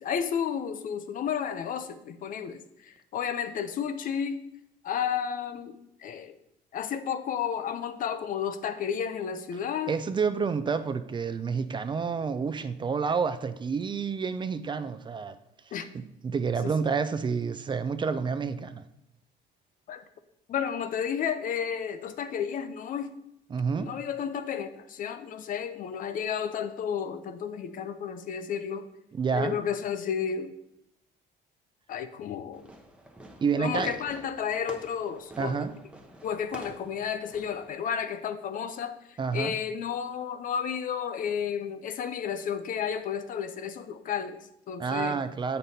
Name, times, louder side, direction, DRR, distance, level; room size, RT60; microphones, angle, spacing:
voice 1, 0.0-4.4 4.8-6.3 6.7-9.9 15.7-15.9 16.6-16.7 19.9-20.0 20.5-23.2 23.8-28.9 29.3-30.5 31.9-32.7 33.6-35.6 36.2-45.2, left 7 dB, 55° left, 0.6 m, -32 dB
voice 2, 9.9-15.4 15.9-18.8 23.5-23.9 29.1-29.5 33.4-33.9 35.4-35.7 39.2-39.5 44.8-45.6, right 5 dB, 30° right, 0.5 m, -29 dB
Fireworks, 32.5-37.7, right 1 dB, 5° right, 0.9 m, -46 dB
7.5 x 5.3 x 4.1 m
cardioid pair, 110°, 17 cm